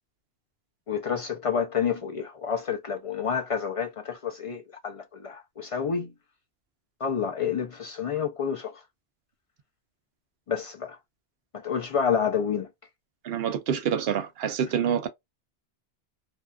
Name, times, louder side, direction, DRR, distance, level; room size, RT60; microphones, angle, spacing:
voice 1, 0.9-6.1 7.0-8.8 10.5-11.0 11.5-12.7, left 7 dB, 55° left, 0.3 m, -29 dB
voice 2, 13.2-15.1, right 8 dB, 75° right, 0.8 m, -27 dB
2.7 x 2.3 x 2.2 m
omnidirectional pair, 1.1 m